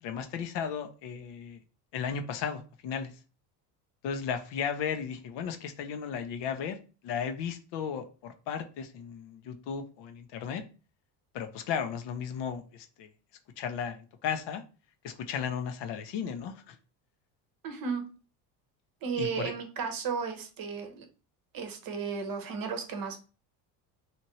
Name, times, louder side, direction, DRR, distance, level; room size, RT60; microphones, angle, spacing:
voice 1, 0.0-1.6 1.9-3.1 4.0-6.8 7.0-10.6 11.3-13.1 13.6-14.6 15.0-16.8 19.2-19.5, left 7 dB, 55° left, 8 dB, 0.6 m, -35 dB
voice 2, 17.6-18.0 19.0-21.0 21.5-23.2, right 5 dB, 45° right, 6 dB, 0.9 m, -34 dB
2.9 x 2.6 x 2.9 m, 0.35 s
supercardioid pair, 80°, 49 cm